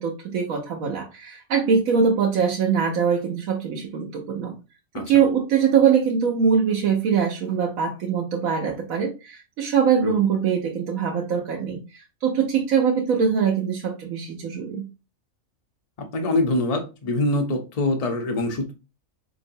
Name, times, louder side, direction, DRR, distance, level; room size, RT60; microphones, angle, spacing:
voice 1, 0.0-4.5 5.0-14.8, right 6 dB, 75° right, 1.1 m, -22 dB
voice 2, 16.0-18.7, left 2 dB, 40° left, 0.6 m, -24 dB
4.1 x 3.0 x 2.6 m
omnidirectional pair, 1.5 m